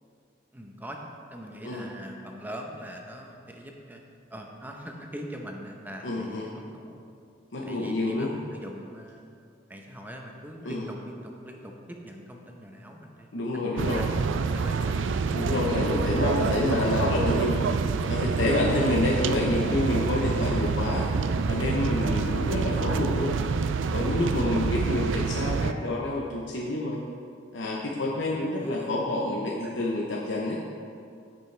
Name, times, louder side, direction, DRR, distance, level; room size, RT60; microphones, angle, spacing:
voice 1, 0.5-4.0 4.3-7.0 7.6-9.2 9.7-15.0 22.2-22.5 24.8-25.0 28.3-29.0 29.6-29.7, equal, 10° right, 1 dB, 0.8 m, -42 dB
voice 2, 6.0-6.4 7.5-8.3 10.6-10.8 13.3-14.0 15.3-17.6 18.1-21.0 21.5-23.3 23.9-27.0 27.5-30.6, left 2 dB, 85° left, -3 dB, 0.9 m, -28 dB
sound 1, 13.8-25.7, right 5 dB, 90° right, 0.4 m, -27 dB
15.0 x 5.3 x 3.3 m, 2.4 s
head